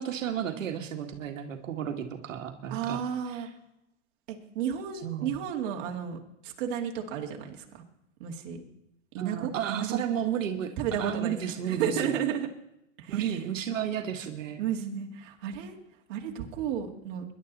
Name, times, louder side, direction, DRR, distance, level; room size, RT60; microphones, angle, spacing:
voice 1, 0.0-3.0 3.3-3.5 5.0-5.3 9.2-10.7 11.0-12.1 13.1-14.6, right 9 dB, 80° right, 5 dB, 1.8 m, -32 dB
voice 2, 2.7-3.5 4.3-7.8 8.2-8.6 9.1-10.0 10.8-12.5 13.0-13.1 14.6-15.8 16.1-17.2, right 8 dB, 40° right, 1 dB, 2.3 m, -33 dB
21.0 x 11.0 x 4.1 m, 0.84 s
supercardioid pair, 160°, 38 cm